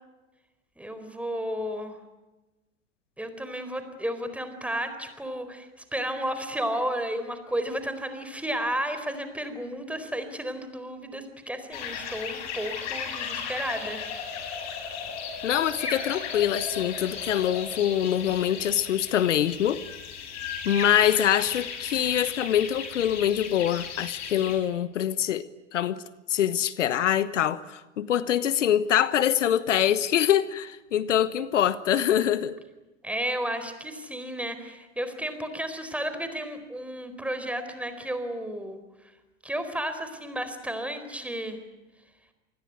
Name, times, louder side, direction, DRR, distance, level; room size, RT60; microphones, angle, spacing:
voice 1, 0.8-2.0 3.2-14.0 33.0-38.8 39.4-41.6, right 1 dB, 5° right, 9 dB, 4.3 m, -32 dB
sound 1, 11.7-24.6, left 6 dB, 45° left, 7.6 m, -36 dB
voice 2, 15.4-19.8 20.6-25.4 25.7-26.0 26.3-32.6, left 10 dB, 75° left, 15 dB, 1.2 m, -24 dB
27.5 x 20.5 x 9.3 m, 1.1 s
hypercardioid pair, 95°, 37 cm